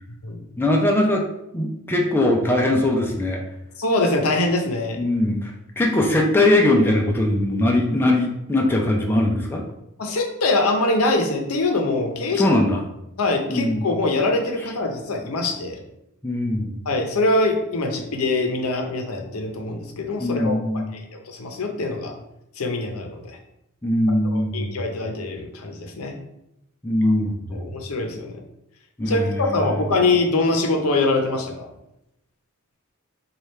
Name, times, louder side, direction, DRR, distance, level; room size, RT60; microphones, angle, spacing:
voice 1, 0.6-1.2 1.5-3.4 5.0-9.6 12.3-12.8 13.5-13.9 16.2-16.8 20.2-20.9 23.8-24.8 26.8-27.7 29.0-29.8, left 1 dB, 10° left, 0 dB, 0.4 m, -21 dB
voice 2, 3.8-5.0 10.0-12.6 13.2-15.8 16.9-20.6 20.9-22.1 22.6-23.4 24.3-26.2 27.5-28.4 29.1-31.7, left 2 dB, 75° left, 3 dB, 0.6 m, -23 dB
3.3 x 2.3 x 4.2 m, 0.85 s
head